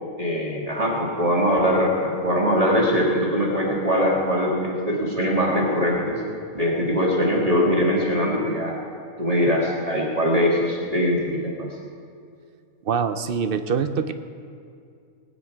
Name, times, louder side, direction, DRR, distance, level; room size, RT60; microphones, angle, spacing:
voice 1, 0.2-6.2 6.5-8.7 9.2-11.7, equal, 25° right, -3 dB, 2.0 m, -22 dB
voice 2, 12.8-14.1, right 6 dB, 55° right, 10 dB, 0.7 m, -24 dB
20.0 x 9.4 x 4.7 m, 2.4 s
omnidirectional pair, 1.5 m